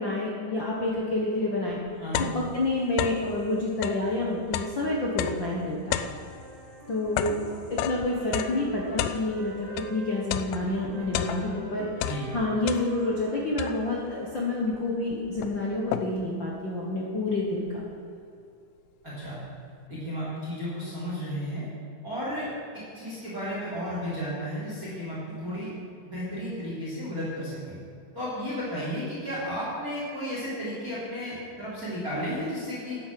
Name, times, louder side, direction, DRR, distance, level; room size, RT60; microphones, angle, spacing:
voice 1, 0.0-1.8 2.3-6.0 6.9-7.4 7.7-11.9 12.3-17.7, left 2 dB, 70° left, -3 dB, 1.1 m, -28 dB
sound 1, 1.2-1.3 1.7-3.4 3.7-10.0 10.3-11.7 12.0-13.2 13.6-14.1 14.7-14.8 15.1-16.4, left 11 dB, 85° left, 2.5 m, -33 dB
Wind instrument woodwind instrument, 5.8-10.2 10.9-14.6, right 3 dB, 85° right, 3.7 m, -45 dB
voice 2, 19.0-19.4 19.9-21.7 22.0-22.5 22.9-25.7 26.0-27.8 28.1-33.0, equal, 25° right, -8 dB, 3.4 m, -33 dB
10.5 x 8.8 x 7.6 m, 2.7 s
omnidirectional pair, 4.4 m